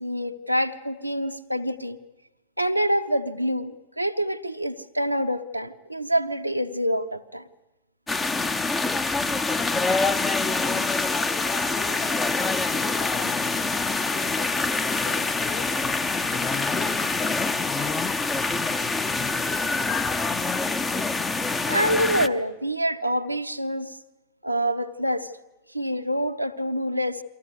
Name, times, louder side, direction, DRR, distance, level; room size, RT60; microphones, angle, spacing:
voice 1, 0.0-2.0 2.6-7.4 21.7-24.0 24.4-25.3 25.7-27.2, equal, 90° right, 6 dB, 0.8 m, -26 dB
sound 1, 8.1-22.3, left 3 dB, 15° left, 0.8 m, -25 dB
voice 2, 9.0-9.5 9.9-18.2 18.5-18.9, left 10 dB, 40° left, 2 dB, 5.2 m, -42 dB
23.5 x 15.5 x 9.2 m, 1.0 s
figure-of-eight pair, 90°, 0 cm